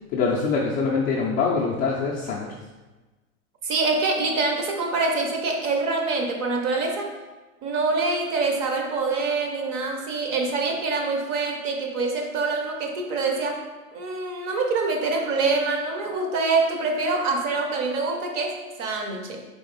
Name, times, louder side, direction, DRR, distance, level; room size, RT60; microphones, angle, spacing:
voice 1, 0.1-2.6, left 4 dB, 25° left, -5 dB, 0.3 m, -24 dB
voice 2, 3.6-7.1 7.6-13.6 13.9-19.5, right 3 dB, 40° right, 2 dB, 0.8 m, -25 dB
4.1 x 2.9 x 4.0 m, 1.2 s
hypercardioid pair, 115°, 42 cm